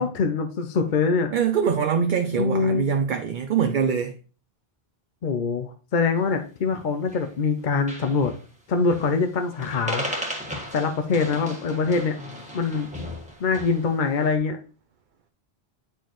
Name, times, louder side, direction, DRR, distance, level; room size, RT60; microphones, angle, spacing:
voice 1, 0.0-1.3 2.3-2.9 5.2-8.3 8.7-10.1 10.7-12.2 12.5-12.9 13.4-14.6, left 4 dB, 55° left, 0.7 m, -24 dB
voice 2, 1.3-4.2, right 7 dB, 55° right, 0.7 m, -23 dB
sound 1, 6.7-7.3 7.6-7.7 7.9-8.4 8.9-9.3 9.5-13.9, equal, 5° right, 1.5 m, -35 dB
9.2 x 4.5 x 3.0 m
omnidirectional pair, 1.1 m